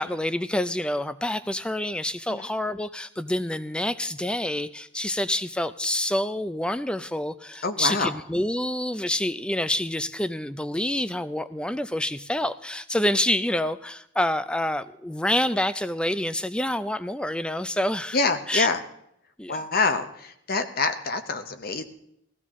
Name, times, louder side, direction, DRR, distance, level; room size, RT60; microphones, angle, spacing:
voice 1, 0.0-18.2 18.5-18.7 19.4-19.6, left 1 dB, 5° left, 13 dB, 0.4 m, -27 dB
voice 2, 7.6-8.1 18.1-18.8 19.5-21.8, left 4 dB, 45° left, 8 dB, 0.8 m, -26 dB
16.5 x 14.5 x 3.7 m, 0.76 s
head